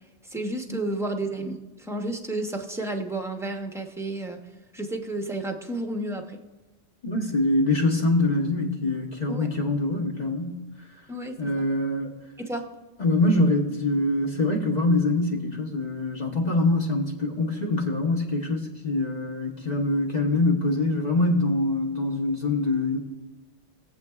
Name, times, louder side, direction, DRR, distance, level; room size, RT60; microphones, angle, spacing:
voice 1, 0.2-4.4 4.7-6.4 9.3-9.5 11.1-11.6 12.4-12.7, right 2 dB, 5° right, 3 dB, 0.8 m, -31 dB
voice 2, 7.0-11.0 11.4-12.1 13.0-23.0, left 2 dB, 40° left, 0 dB, 1.2 m, -24 dB
21.0 x 7.7 x 2.4 m, 1.2 s
omnidirectional pair, 1.2 m